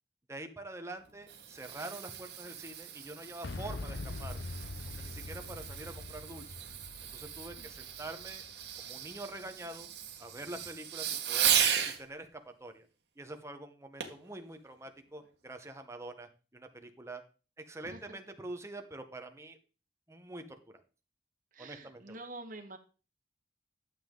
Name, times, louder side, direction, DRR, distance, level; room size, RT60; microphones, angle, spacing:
voice 1, 0.3-4.4 5.0-6.6 7.1-8.4 8.8-9.9 10.2-11.5 11.8-12.9 13.2-17.2 17.6-19.6 20.1-20.6 21.6-22.2, right 2 dB, 15° right, 6 dB, 1.1 m, -45 dB
Fireworks, 1.0-12.0 14.0-14.3 14.9-15.0, right 9 dB, 65° right, 1.6 m, -36 dB
Boom, 3.4-9.3, left 2 dB, 70° left, 0.7 m, -43 dB
voice 2, 7.6-7.9 17.8-18.2 21.5-22.8, right 2 dB, 50° right, 4 dB, 1.7 m, -47 dB
12.5 x 7.5 x 3.9 m, 0.35 s
head